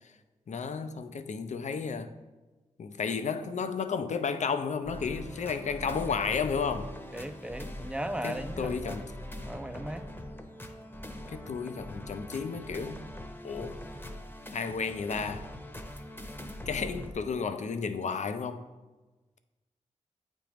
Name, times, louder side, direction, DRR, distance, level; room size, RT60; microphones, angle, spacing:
voice 1, 0.5-2.1 2.8-6.9 8.2-9.1 11.3-13.0 13.4-13.8 14.5-15.5 16.7-18.7, left 5 dB, 60° left, 0.4 m, -32 dB
sound 1, 4.8-17.1, left 1 dB, 15° left, 0.8 m, -42 dB
voice 2, 7.1-9.0 9.5-10.1, right 1 dB, 5° right, 0.4 m, -37 dB
8.9 x 3.5 x 3.0 m
cardioid pair, 40°, 14 cm